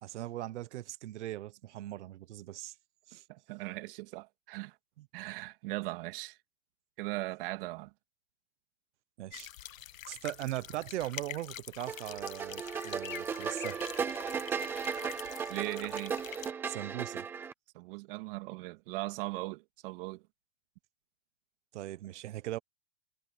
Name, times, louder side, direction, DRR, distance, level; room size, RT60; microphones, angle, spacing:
voice 1, 0.0-2.7 3.1-3.2 5.0-5.1 9.2-9.5 10.1-13.8 16.7-17.3 21.7-22.6, right 15 dB, 60° right, 1.1 m, -39 dB
voice 2, 3.3-4.8 5.1-6.4 7.0-7.9 15.5-16.2 17.7-20.2, right 21 dB, 45° right, 2.2 m, -39 dB
sound 1, 9.3-16.5, left 12 dB, 85° left, 1.2 m, -46 dB
sound 2, 11.9-17.5, right 6 dB, 5° right, 0.5 m, -36 dB
supercardioid pair, 160°, 39 cm